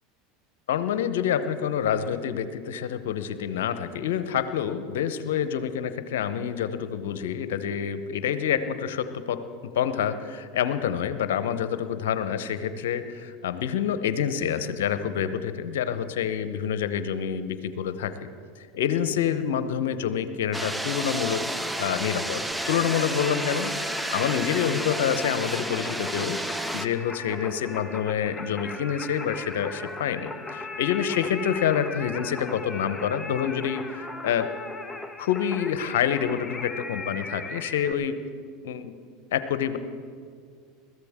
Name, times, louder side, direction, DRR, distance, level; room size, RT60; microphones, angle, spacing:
voice 1, 0.7-9.4 9.7-18.1 18.7-21.4 21.8-34.5 35.2-38.2 38.6-38.9 39.3-39.8, left 8 dB, 75° left, 11 dB, 0.8 m, -27 dB
sound 1, 20.5-26.9, right 1 dB, 5° right, 0.6 m, -31 dB
Singing, 22.5-37.9, left 2 dB, 10° left, 1.1 m, -38 dB
21.5 x 14.0 x 3.6 m, 2.1 s
hypercardioid pair, 85°, 0 cm